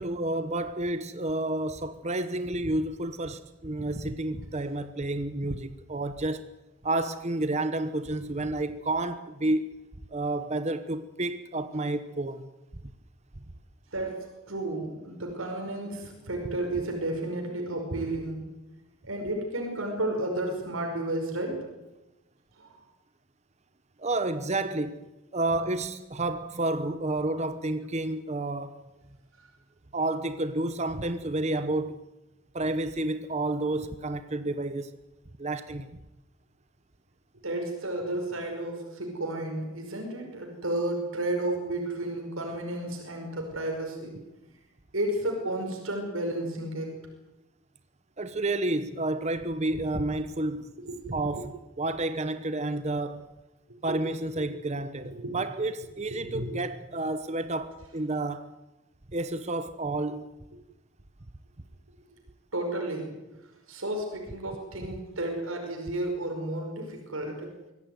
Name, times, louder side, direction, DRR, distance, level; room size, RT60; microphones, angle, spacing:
voice 1, 0.0-6.5 6.8-9.7 10.1-12.5 24.0-25.0 25.3-28.8 29.9-32.0 32.5-35.0 35.4-35.9 48.2-50.7 51.1-53.3 53.8-58.5 59.1-60.3, right 2 dB, 35° right, 1.1 m, -30 dB
voice 2, 13.9-18.5 19.1-21.6 22.6-22.8 37.4-44.2 44.9-46.9 50.9-51.0 51.4-51.5 53.9-54.0 55.1-55.4 56.2-56.5 62.5-63.2 63.7-67.5, right 1 dB, 85° right, 5.4 m, -32 dB
24.0 x 17.0 x 9.5 m
head